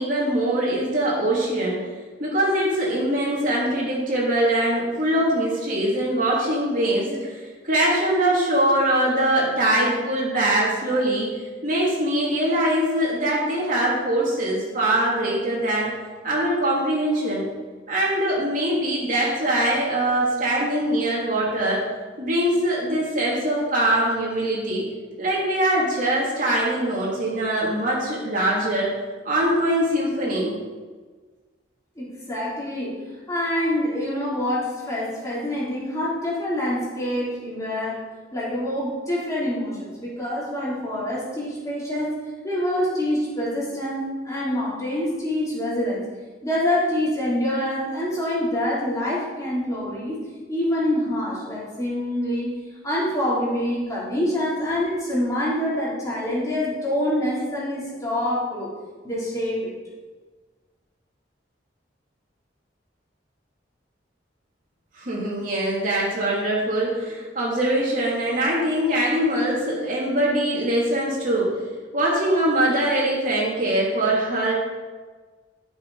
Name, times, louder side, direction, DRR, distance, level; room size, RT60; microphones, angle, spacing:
voice 1, 0.0-1.9 2.2-11.3 11.6-15.9 16.2-17.5 17.9-21.8 22.2-24.8 25.2-28.9 29.2-30.5 64.9-71.5 71.9-74.5, right 1 dB, 50° right, -5 dB, 3.2 m, -22 dB
voice 2, 32.0-33.0 33.3-38.0 38.3-42.1 42.4-46.0 46.4-52.5 52.8-58.7 59.0-59.7, left 1 dB, 20° left, -8 dB, 4.3 m, -26 dB
13.5 x 7.4 x 5.1 m, 1.4 s
head